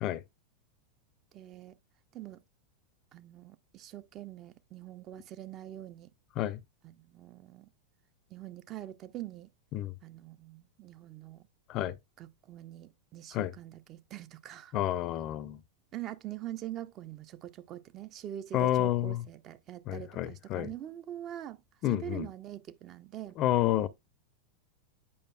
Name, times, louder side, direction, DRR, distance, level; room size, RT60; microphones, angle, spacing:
voice 1, 1.3-1.8 2.1-2.4 3.1-6.1 6.8-7.7 8.3-9.5 10.0-11.5 12.2-14.8 15.9-21.6 21.8-23.4, right 12 dB, 35° right, 0.4 m, -44 dB
voice 2, 14.7-15.6 18.5-19.2 19.9-20.7 21.8-22.3 23.4-23.9, left 13 dB, 35° left, 0.4 m, -29 dB
8.5 x 5.1 x 2.3 m
figure-of-eight pair, 90°, 0 cm